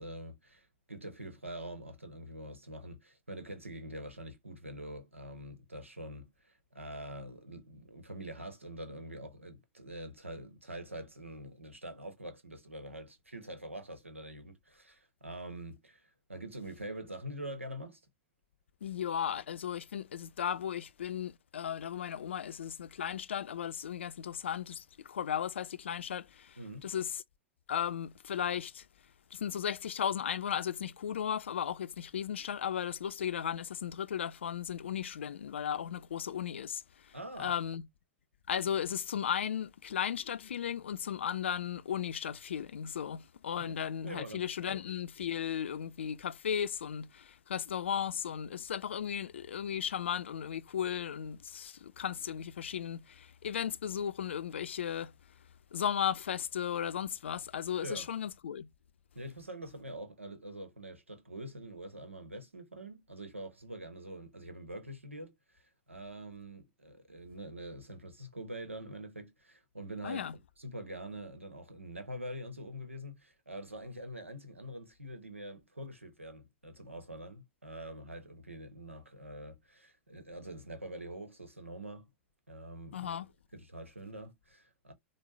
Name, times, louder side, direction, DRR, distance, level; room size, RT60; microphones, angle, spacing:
voice 1, 0.0-18.0 26.6-26.9 37.1-37.5 43.6-43.7 44.0-44.8 57.8-58.1 59.1-70.2 70.6-82.1 82.5-83.1 83.5-84.9, right 1 dB, 85° right, 1.0 m, -45 dB
voice 2, 18.8-27.2 27.7-28.9 29.3-37.9 38.5-55.1 55.7-58.7 70.0-70.4 82.9-83.3, left 8 dB, 70° left, 0.5 m, -36 dB
5.2 x 2.1 x 3.2 m
figure-of-eight pair, 100°, 7 cm